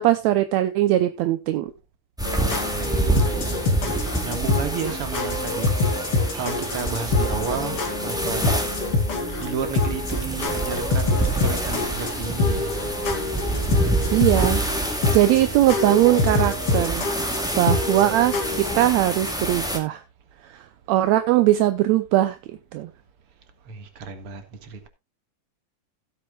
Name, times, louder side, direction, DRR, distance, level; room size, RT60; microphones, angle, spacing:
voice 1, 0.0-1.7 14.1-14.6 15.1-17.0 17.6-20.0 20.5-22.4 22.7-22.9, right 14 dB, 75° right, 1.7 m, -20 dB
sound 1, 2.2-18.8, left 3 dB, 45° left, 3.4 m, -26 dB
sound 2, 2.2-19.8, right 2 dB, ahead, 1.5 m, -28 dB
voice 2, 2.7-8.6 8.9-12.9 15.7-15.8 17.9-18.4 23.6-24.9, right 6 dB, 50° right, 2.3 m, -33 dB
sound 3, 11.1-17.3, right 2 dB, 20° right, 2.9 m, -42 dB
16.5 x 8.6 x 2.3 m
omnidirectional pair, 3.7 m